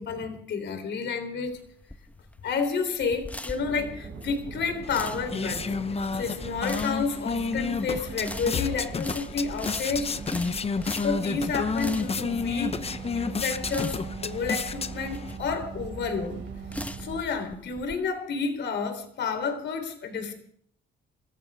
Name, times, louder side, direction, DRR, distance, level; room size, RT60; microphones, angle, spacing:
voice 1, 0.0-1.6 2.4-5.7 6.1-10.2 11.0-12.8 13.1-16.4 17.0-20.3, left 5 dB, 65° left, 8 dB, 3.6 m, -30 dB
sound 1, 1.5-18.0, left 1 dB, 5° left, 1.2 m, -41 dB
Boat on River, 3.6-17.2, right 5 dB, 80° right, 5.8 m, -40 dB
sound 2, 4.8-15.4, left 4 dB, 30° left, 0.8 m, -31 dB
26.0 x 14.5 x 3.6 m, 0.64 s
cardioid pair, 90°, 20 cm